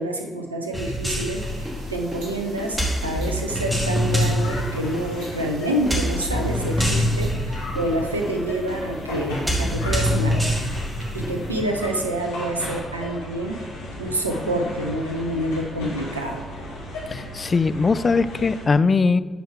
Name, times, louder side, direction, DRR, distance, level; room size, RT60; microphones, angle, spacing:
voice 1, 0.0-10.5 11.1-13.6 13.9-16.4, right 1 dB, 85° right, 2 dB, 0.5 m, -27 dB
sound 1, 0.7-11.6, equal, 10° right, 1.8 m, -26 dB
sound 2, 1.3-7.3, right 1 dB, 65° right, 2.1 m, -43 dB
sound 3, 3.8-18.7, left 1 dB, 70° left, 1.4 m, -35 dB
voice 2, 17.1-19.2, left 4 dB, 35° left, 14 dB, 0.3 m, -20 dB
10.0 x 4.7 x 3.3 m, 1.3 s
figure-of-eight pair, 40°, 0 cm